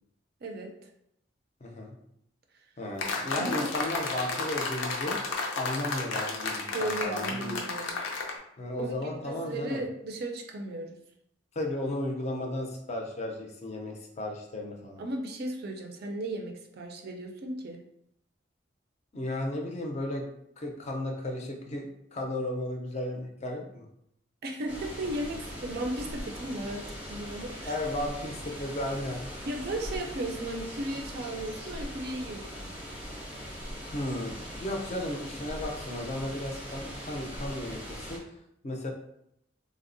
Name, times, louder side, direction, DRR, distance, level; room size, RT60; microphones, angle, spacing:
voice 1, 0.4-0.9 3.3-3.7 6.7-8.1 8.8-11.0 15.0-17.8 24.4-27.8 29.5-32.7, right 1 dB, 55° right, 4 dB, 0.4 m, -35 dB
voice 2, 1.6-1.9 2.8-5.2 5.5-7.6 8.6-9.8 11.6-15.0 19.1-20.3 20.6-23.8 27.6-29.2 33.9-34.4 34.6-38.2 38.6-38.9, left 1 dB, 35° left, 1 dB, 0.4 m, -34 dB
sound 1, 3.0-8.4, left 3 dB, 90° left, 0.5 m, -33 dB
sound 2, 24.7-38.2, equal, 5° right, 0.6 m, -41 dB
3.5 x 2.0 x 2.5 m, 0.75 s
head